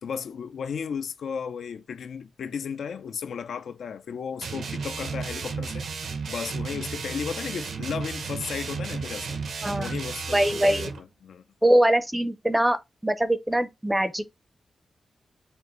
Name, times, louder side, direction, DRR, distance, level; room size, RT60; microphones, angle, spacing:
voice 1, 0.0-5.8 6.3-9.4 9.8-11.4, left 6 dB, 80° left, 0.4 m, -34 dB
sound 1, 4.4-11.0, right 5 dB, 70° right, 0.8 m, -33 dB
voice 2, 9.6-9.9 10.3-10.9 11.6-12.8 13.0-14.3, right 1 dB, 5° right, 0.5 m, -22 dB
6.8 x 2.6 x 3.0 m
wide cardioid pair, 170°, 0 cm